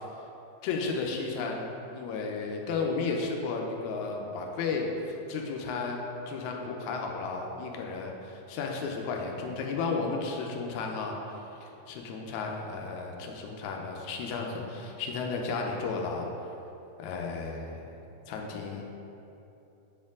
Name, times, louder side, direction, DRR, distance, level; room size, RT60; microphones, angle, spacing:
voice 1, 0.6-1.7 1.9-6.0 6.3-11.2 11.6-16.3 17.0-17.9 18.3-18.8, left 4 dB, 85° left, 1 dB, 2.0 m, -33 dB
8.4 x 4.4 x 3.6 m, 2.9 s
omnidirectional pair, 3.4 m